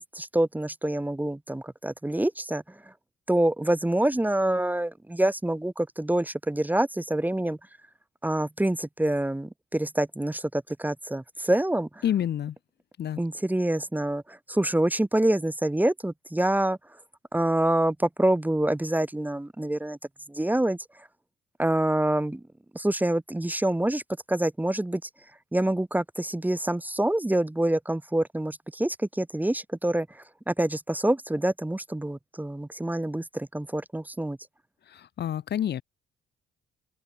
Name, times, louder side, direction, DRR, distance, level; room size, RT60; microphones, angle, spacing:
voice 1, 0.0-2.8 3.3-7.6 8.2-12.0 13.2-16.8 17.3-20.0 20.3-20.8 21.6-22.4 22.7-24.0 24.3-25.0 25.5-34.4, right 1 dB, 10° right, 1.3 m, -26 dB
voice 2, 12.0-12.6 13.0-13.2 34.9-35.8, left 10 dB, 55° left, 1.0 m, -28 dB
open air
cardioid pair, 90°, 20 cm